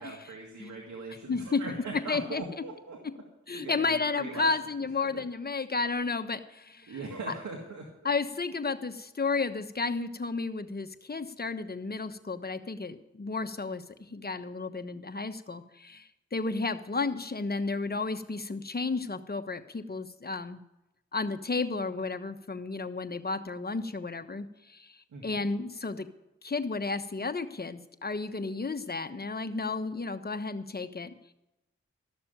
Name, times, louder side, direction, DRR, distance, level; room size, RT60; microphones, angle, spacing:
voice 1, 0.0-3.0 3.5-4.5 4.8-5.2 6.9-8.1 25.1-25.4, right 3 dB, 75° right, 0 dB, 2.0 m, -41 dB
voice 2, 1.3-1.6 2.1-2.4 3.5-7.0 8.0-20.6 21.1-25.0 25.2-26.1 26.4-31.3, left 3 dB, 30° left, 9 dB, 1.1 m, -32 dB
13.5 x 6.8 x 9.1 m, 0.90 s
cardioid pair, 40°, 30 cm